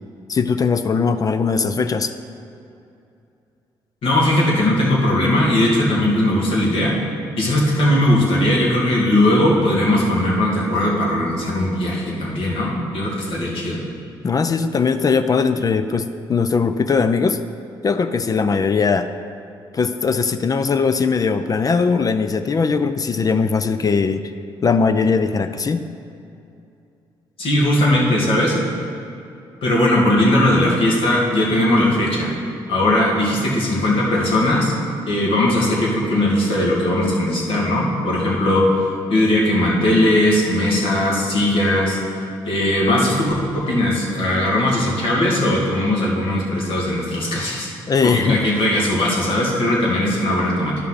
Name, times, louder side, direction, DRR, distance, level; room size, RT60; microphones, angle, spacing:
voice 1, 0.3-2.1 14.2-17.4 17.8-19.1 19.7-24.2 24.6-25.9 47.9-48.4, left 5 dB, 40° left, 10 dB, 0.5 m, -19 dB
voice 2, 4.0-6.9 7.4-13.8 27.4-28.6 29.6-32.3 32.7-34.7 35.1-42.0 42.4-47.7 48.0-50.8, left 1 dB, 65° left, -4 dB, 2.3 m, -18 dB
11.5 x 5.5 x 4.1 m, 2.6 s
supercardioid pair, 65°, 10 cm